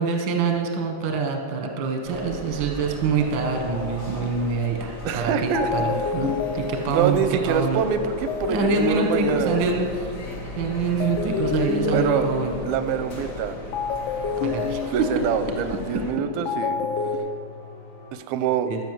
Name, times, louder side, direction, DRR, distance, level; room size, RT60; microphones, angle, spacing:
voice 1, 0.0-7.8 8.5-10.1 10.6-12.5 14.4-14.8 18.6-18.8, right 5 dB, 65° right, 3 dB, 1.1 m, -25 dB
sound 1, 2.0-16.1, left 1 dB, 45° left, 0.8 m, -38 dB
sound 2, 5.1-5.2 5.5-10.5 11.0-13.2 13.7-17.2, left 5 dB, 75° left, 2.1 m, -29 dB
voice 2, 5.1-5.7 6.9-9.8 11.9-12.3 12.6-13.6 14.9-16.8 18.1-18.7, right 7 dB, 90° right, 10 dB, 2.5 m, -25 dB
sound 3, 6.9-18.1, left 3 dB, 60° left, 2.8 m, -42 dB
13.0 x 5.8 x 7.5 m, 2.1 s
omnidirectional pair, 4.1 m